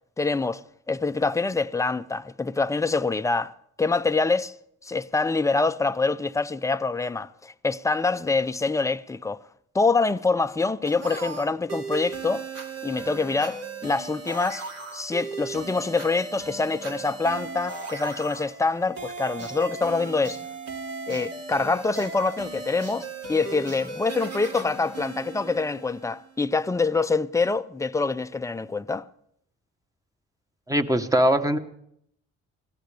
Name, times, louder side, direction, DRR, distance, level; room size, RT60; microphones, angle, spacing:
voice 1, 0.2-3.5 3.8-4.5 4.8-9.4 9.7-12.4 12.8-14.7 14.9-20.4 21.1-29.1, left 3 dB, 10° left, 0.5 m, -25 dB
sound 1, 10.9-26.3, right 4 dB, 55° right, 2.5 m, -37 dB
voice 2, 30.7-31.6, right 1 dB, 10° right, 1.2 m, -21 dB
24.5 x 16.5 x 3.4 m
cardioid pair, 90°, 30 cm